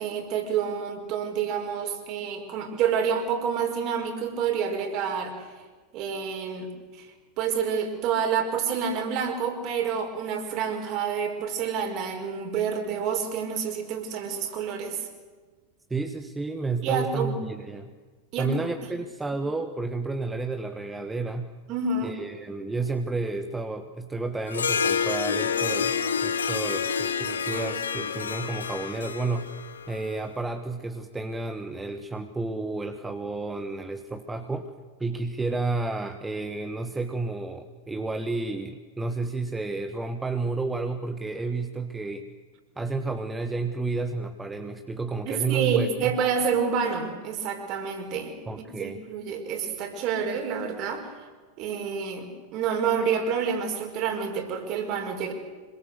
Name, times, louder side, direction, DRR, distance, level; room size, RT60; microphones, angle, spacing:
voice 1, 0.0-5.5 5.9-7.1 7.4-15.1 16.8-17.4 18.3-18.7 21.7-22.2 45.3-51.1 51.6-55.3, right 6 dB, 40° right, 4 dB, 5.2 m, -28 dB
voice 2, 15.9-17.9 18.4-21.5 22.0-29.5 29.9-34.7 35.0-42.3 42.8-46.1 48.5-49.0, right 3 dB, 10° right, 7 dB, 1.5 m, -31 dB
Harp, 24.5-30.2, left 6 dB, 70° left, 1.5 m, -28 dB
26.5 x 22.5 x 8.1 m, 1.4 s
figure-of-eight pair, 90°, 0 cm